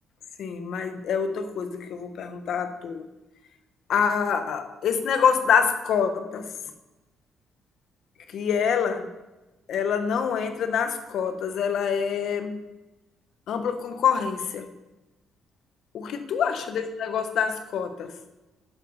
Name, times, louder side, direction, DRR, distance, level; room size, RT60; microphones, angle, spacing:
voice 1, 0.4-3.1 3.9-6.5 8.3-9.1 9.7-12.7 13.5-14.7 15.9-18.1, left 7 dB, 70° left, 8 dB, 1.1 m, -26 dB
10.0 x 7.0 x 5.4 m, 1.1 s
cardioid pair, 90°, 0 cm